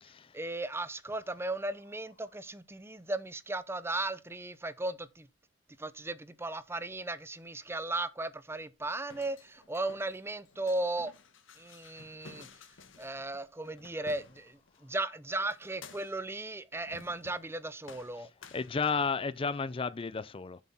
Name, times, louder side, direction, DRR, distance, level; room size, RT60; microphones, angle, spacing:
voice 1, 0.3-5.3 5.8-11.1 11.6-12.5 13.0-18.3, right 2 dB, 15° right, 0.7 m, -36 dB
sound 1, 8.8-14.8 15.5-16.3 16.9-17.6 17.8-19.3, left 4 dB, 90° left, 1.5 m, -54 dB
voice 2, 18.5-20.6, left 5 dB, 30° left, 0.4 m, -32 dB
7.3 x 6.5 x 5.5 m
head